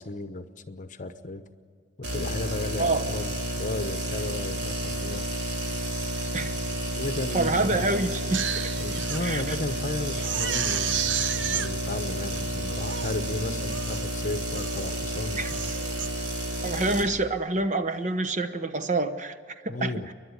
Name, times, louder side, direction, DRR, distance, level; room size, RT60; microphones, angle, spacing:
voice 1, 0.0-1.4 2.0-5.3 6.2-6.3 7.0-7.9 8.8-15.7 19.7-20.1, left 2 dB, 45° left, 10 dB, 1.0 m, -34 dB
sound 1, 2.0-17.0, equal, 65° right, 4.0 m, -31 dB
voice 2, 7.3-8.7 9.2-9.6 15.4-15.5 16.6-19.3 19.6-20.1, right 2 dB, 40° right, 10 dB, 0.9 m, -27 dB
Crying sobbing, 8.1-9.2 9.6-9.7 10.2-11.7 12.3-12.4 12.8-13.2 13.7-14.1 14.5-15.0 15.3-16.1 16.6-16.8, right 9 dB, 85° right, 0.7 m, -31 dB
29.5 x 11.5 x 9.8 m, 2.1 s
head